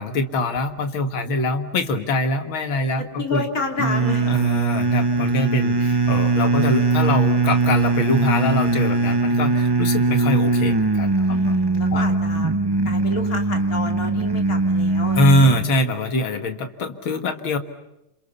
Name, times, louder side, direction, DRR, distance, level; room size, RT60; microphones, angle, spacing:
voice 1, 0.0-3.4 4.3-11.6 11.9-12.0 15.2-17.6, left 1 dB, 75° left, 7 dB, 2.5 m, -23 dB
voice 2, 3.0-4.4 11.3-12.6 12.9-15.3, left 3 dB, 40° left, 3 dB, 3.5 m, -30 dB
sound 1, 3.8-15.7, right 3 dB, 35° right, 0.3 m, -20 dB
27.5 x 27.5 x 7.0 m, 0.90 s
omnidirectional pair, 2.3 m